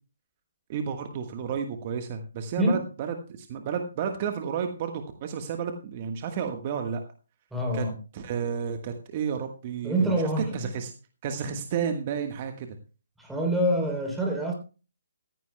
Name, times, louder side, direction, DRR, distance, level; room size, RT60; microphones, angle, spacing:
voice 1, 0.7-7.0 7.7-7.8 8.1-10.1 10.4-10.9 11.2-12.8, right 7 dB, 35° right, 6 dB, 1.4 m, -31 dB
voice 2, 7.5-8.0 9.8-10.5 11.5-11.6 13.2-14.5, right 1 dB, 5° right, 1 dB, 3.5 m, -25 dB
15.5 x 14.5 x 2.2 m, 0.34 s
figure-of-eight pair, 140°, 0 cm